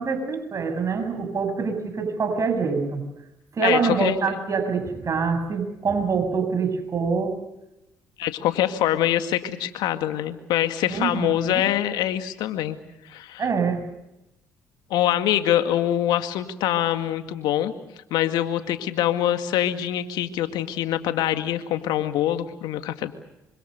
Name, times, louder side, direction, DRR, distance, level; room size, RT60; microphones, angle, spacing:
voice 1, 0.0-3.0 3.5-7.4 10.9-11.6 13.4-13.8, right 5 dB, 45° right, 7 dB, 7.7 m, -25 dB
voice 2, 3.6-4.4 8.2-12.8 13.0-13.5 14.9-17.7 18.1-23.1, left 12 dB, 75° left, 9 dB, 2.1 m, -24 dB
26.5 x 25.0 x 6.7 m, 0.91 s
hypercardioid pair, 55°, 7 cm